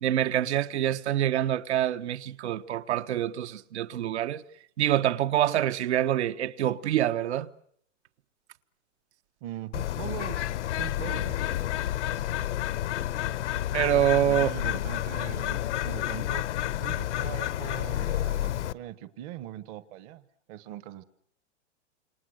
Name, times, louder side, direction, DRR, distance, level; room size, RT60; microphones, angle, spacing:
voice 1, 0.0-4.4 4.8-7.5 13.7-14.5, right 12 dB, 65° right, 1.3 m, -26 dB
voice 2, 9.4-10.4 10.8-11.3 14.3-16.5 16.8-20.2 20.5-21.0, right 12 dB, 30° right, 1.0 m, -41 dB
Bird, 9.7-18.7, left 13 dB, 70° left, 1.1 m, -30 dB
29.5 x 28.0 x 6.4 m
supercardioid pair, 165°, 36 cm